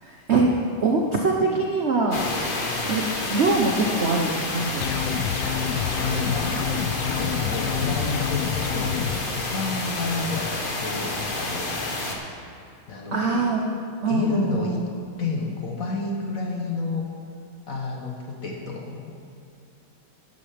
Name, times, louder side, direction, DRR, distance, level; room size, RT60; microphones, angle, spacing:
voice 1, 0.0-0.5 0.8-2.3 2.9-3.0 3.3-5.2 13.1-13.6 14.0-14.8, right 3 dB, 65° right, 0 dB, 0.6 m, -23 dB
sound 1, 2.1-12.2, left 2 dB, 35° left, 1.0 m, -29 dB
sound 2, 4.8-9.2, left 9 dB, 75° left, 1.2 m, -28 dB
voice 2, 5.2-6.7 7.0-11.9 12.9-13.5 14.1-14.8 15.2-17.1 17.7-19.1, left 3 dB, 50° left, 1 dB, 1.1 m, -31 dB
13.0 x 11.0 x 3.4 m, 2.5 s
omnidirectional pair, 2.3 m